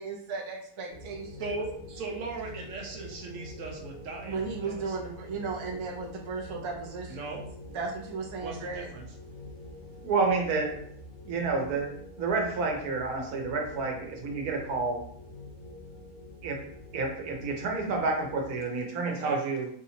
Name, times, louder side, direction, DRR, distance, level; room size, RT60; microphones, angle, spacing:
voice 1, 0.0-1.5 4.3-7.3 7.7-8.9, right 4 dB, 35° right, -1 dB, 0.5 m, -35 dB
sound 1, 0.9-18.5, left 1 dB, 60° left, 2.2 m, -46 dB
voice 2, 1.4-4.9 7.1-7.4 8.4-9.1 19.0-19.4, right 3 dB, 65° right, 0 dB, 1.2 m, -38 dB
voice 3, 10.0-10.8 11.3-15.0 16.4-19.7, right 3 dB, 90° right, 1 dB, 1.4 m, -29 dB
4.8 x 2.8 x 2.8 m, 0.62 s
omnidirectional pair, 1.5 m